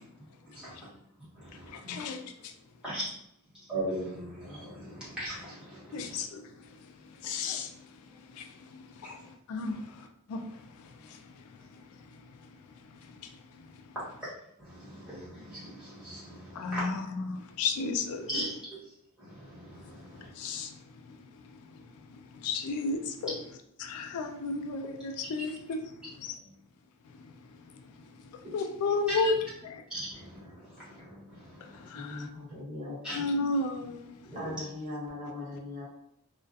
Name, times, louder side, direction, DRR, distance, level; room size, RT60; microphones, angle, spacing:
voice 1, 0.5-0.9 1.4-2.1 2.8-3.1 3.7-6.2 14.2-14.3 14.6-16.8 18.3-18.5 19.2-20.3 29.2-29.3 29.9-31.7 33.0-33.2 34.3-34.5, right 1 dB, 5° right, 1.1 m, -39 dB
voice 2, 1.7-2.5 5.9-6.4 7.2-7.7 8.3-9.2 9.5-10.4 11.0-11.2 13.2-13.3 16.5-18.4 20.3-20.7 21.1-21.2 21.7-21.8 22.3-23.4 23.8-25.8 26.1-26.3 28.5-29.3 29.6-29.8 31.9-32.3 33.1-34.2, left 3 dB, 80° left, 0.3 m, -33 dB
voice 3, 31.9-33.2 34.3-35.8, left 2 dB, 35° right, 1.0 m, -40 dB
2.3 x 2.1 x 2.6 m
head